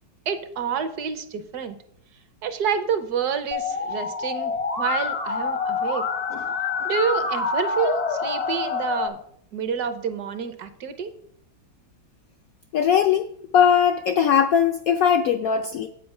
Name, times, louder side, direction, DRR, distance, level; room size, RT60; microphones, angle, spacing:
voice 1, 0.3-1.8 2.4-6.0 6.8-9.2 9.5-11.1, right 7 dB, 65° right, 11 dB, 1.2 m, -28 dB
Musical instrument, 3.5-9.1, left 5 dB, 40° left, 0.5 m, -27 dB
voice 2, 12.7-13.3 13.5-15.9, left 8 dB, 75° left, 7 dB, 0.8 m, -20 dB
8.2 x 6.9 x 5.4 m, 0.67 s
omnidirectional pair, 2.0 m